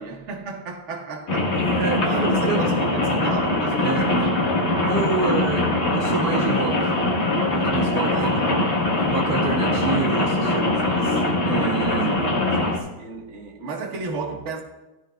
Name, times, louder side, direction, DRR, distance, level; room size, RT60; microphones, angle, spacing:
voice 1, 0.0-4.5 7.9-11.2 11.8-14.6, right 4 dB, 45° right, 1.2 m, -35 dB
Rain, 1.3-12.8, left 2 dB, 40° left, 1.4 m, -22 dB
voice 2, 1.7-2.7 3.8-4.1 4.8-6.9 7.4-8.5 9.1-10.7 11.4-12.2, right 5 dB, 60° right, 1.2 m, -28 dB
16.0 x 12.5 x 2.2 m
omnidirectional pair, 2.2 m